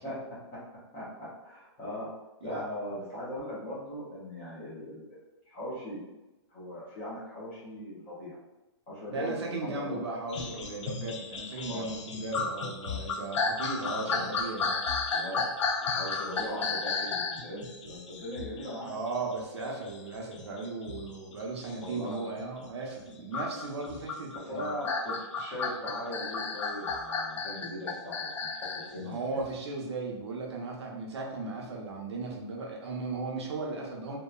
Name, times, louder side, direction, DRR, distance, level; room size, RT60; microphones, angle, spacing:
voice 1, 0.0-0.6 0.9-2.1 2.4-5.2 5.5-6.0 6.5-8.4 8.9-10.0 11.5-11.8 12.4-12.5 12.8-13.0 13.8-14.3 15.1-18.9 21.8-22.2 24.5-28.5 28.7-29.4, equal, 15° left, -9 dB, 0.5 m, -39 dB
voice 2, 9.1-14.8 18.8-24.8 29.0-34.2, right 3 dB, 65° right, -1 dB, 0.6 m, -36 dB
sound 1, 10.3-22.7 23.3-28.9 29.4-29.5, left 4 dB, 85° left, 0.4 m, -33 dB
2.8 x 2.1 x 2.3 m, 1.0 s
hypercardioid pair, 175°, 15 cm